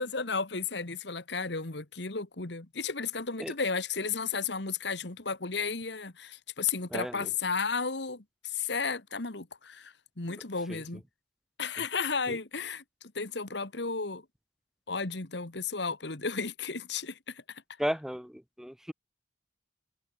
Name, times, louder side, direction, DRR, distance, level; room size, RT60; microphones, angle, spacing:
voice 1, 0.0-11.0 11.6-12.8 13.1-14.2 14.9-17.6, left 5 dB, 65° left, 1.7 m, -33 dB
voice 2, 6.9-7.3 10.7-10.8 12.3-12.4 17.8-18.9, equal, ahead, 0.8 m, -34 dB
head